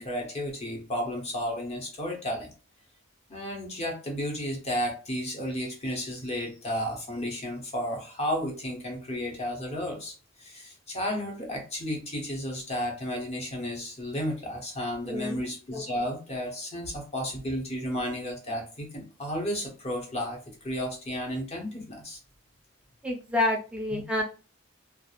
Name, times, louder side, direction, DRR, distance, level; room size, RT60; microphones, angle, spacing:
voice 1, 0.0-2.5 3.3-22.2 23.9-24.0, equal, 30° left, 1 dB, 0.8 m, -33 dB
voice 2, 15.0-15.4 23.0-24.2, left 2 dB, 5° right, 0 dB, 0.5 m, -28 dB
2.3 x 2.0 x 2.9 m, 0.35 s
head